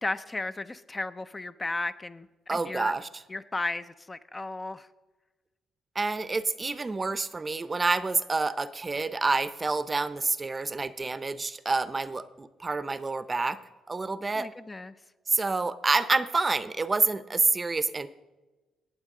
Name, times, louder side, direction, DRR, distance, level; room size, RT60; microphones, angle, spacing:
voice 1, 0.0-2.9 3.3-4.9 14.3-14.9, left 2 dB, 20° left, 12 dB, 0.4 m, -34 dB
voice 2, 2.5-3.1 6.0-13.6 13.9-14.5 15.3-18.1, right 3 dB, 25° right, 14 dB, 0.6 m, -28 dB
18.5 x 7.5 x 3.7 m, 1.2 s
cardioid pair, 90°, 0 cm